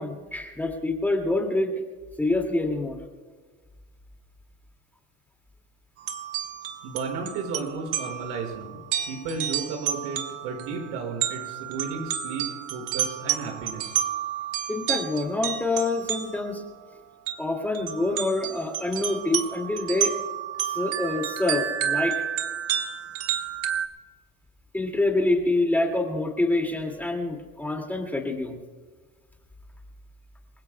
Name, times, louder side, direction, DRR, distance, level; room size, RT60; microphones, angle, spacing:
voice 1, 0.0-1.7 2.2-3.0 14.7-16.6 17.4-20.1 20.6-22.2 24.7-28.6, left 2 dB, 5° left, 2 dB, 2.1 m, -26 dB
sound 1, 6.0-16.6 17.3-17.4 17.7-23.9, right 10 dB, 55° right, 1.6 m, -31 dB
voice 2, 6.8-14.1, right 4 dB, 75° right, 2 dB, 5.3 m, -34 dB
28.0 x 16.5 x 2.2 m, 1.4 s
cardioid pair, 135°, 29 cm